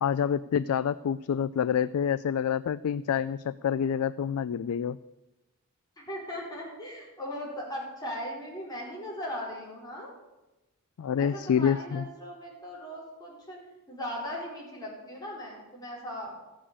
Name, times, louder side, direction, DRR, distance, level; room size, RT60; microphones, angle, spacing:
voice 1, 0.0-5.0 11.0-12.0, left 8 dB, 75° left, 16 dB, 0.3 m, -27 dB
voice 2, 6.0-10.1 11.2-13.6 13.9-16.3, equal, 20° left, -4 dB, 4.9 m, -38 dB
14.5 x 7.6 x 8.4 m, 1.0 s
head